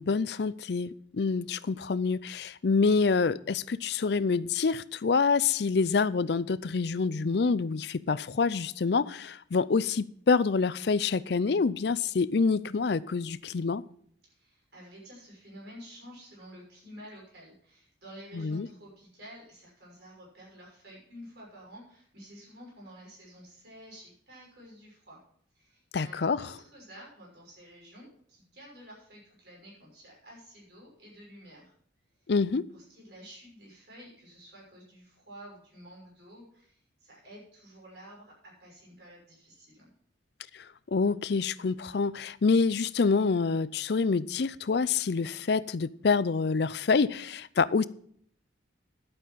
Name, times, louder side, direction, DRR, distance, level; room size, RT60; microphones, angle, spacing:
voice 1, 0.0-13.8 18.3-18.7 25.9-26.4 32.3-32.7 40.5-47.9, left 4 dB, 55° left, 0.5 m, -27 dB
voice 2, 14.2-25.2 25.5-31.7 32.7-39.9, equal, 60° right, 6.2 m, -50 dB
11.0 x 8.7 x 5.7 m
head